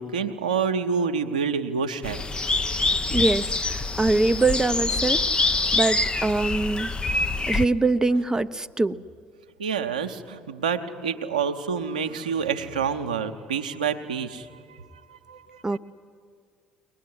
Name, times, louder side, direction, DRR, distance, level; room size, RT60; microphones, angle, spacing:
voice 1, 0.0-2.2 9.6-15.8, right 6 dB, 85° right, 6 dB, 0.9 m, -28 dB
sound 1, 2.0-7.7, left 3 dB, 20° left, 0.8 m, -25 dB
voice 2, 3.1-6.9 7.5-9.0 15.6-15.8, right 3 dB, 15° right, 10 dB, 0.7 m, -24 dB
22.5 x 19.5 x 9.6 m, 2.1 s
figure-of-eight pair, 55°, 4 cm